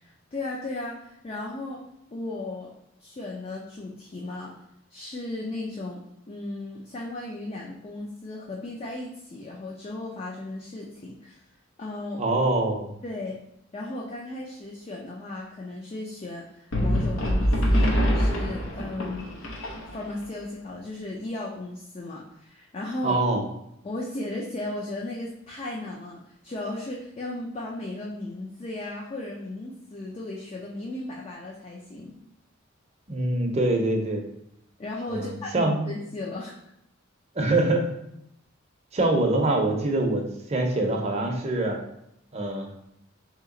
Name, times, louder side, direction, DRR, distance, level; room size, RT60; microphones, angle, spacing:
voice 1, 0.0-1.8 2.1-2.7 3.0-4.6 4.9-6.0 6.3-11.4 11.8-12.4 13.0-13.4 13.7-19.3 19.9-23.2 23.8-32.1 34.8-36.5, left 2 dB, 30° left, -2 dB, 0.4 m, -35 dB
voice 2, 12.2-12.9 23.0-23.4 33.1-34.2 35.1-35.9 37.4-37.9 38.9-41.8 42.3-42.7, right 2 dB, 35° right, 2 dB, 0.6 m, -24 dB
sound 1, 16.7-20.2, equal, 85° left, 0.7 m, -24 dB
3.2 x 2.9 x 3.7 m, 0.79 s
head